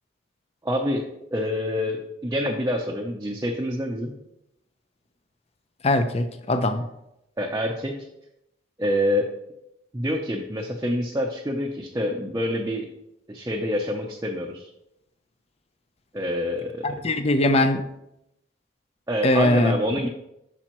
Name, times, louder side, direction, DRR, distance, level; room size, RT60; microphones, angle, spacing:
voice 1, 0.6-1.0 1.3-4.1 7.4-7.9 8.8-9.3 9.9-12.9 13.3-14.7 16.1-16.9 19.1-20.1, equal, 15° right, 0.6 m, -26 dB
voice 2, 5.8-6.8 16.8-17.8 19.2-19.7, left 1 dB, 30° left, 0.5 m, -21 dB
8.7 x 5.9 x 3.0 m
head